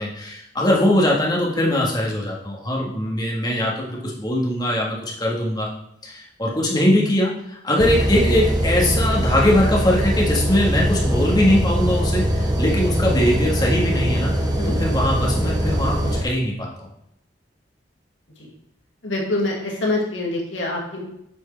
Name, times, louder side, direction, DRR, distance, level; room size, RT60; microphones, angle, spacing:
voice 1, 0.0-5.7 6.0-16.9, left 1 dB, 20° left, -3 dB, 1.6 m, -21 dB
sound 1, 7.8-16.2, equal, 20° right, 0.9 m, -22 dB
voice 2, 19.0-21.0, left 2 dB, 85° left, -2 dB, 2.1 m, -25 dB
8.5 x 4.8 x 4.4 m, 0.79 s
head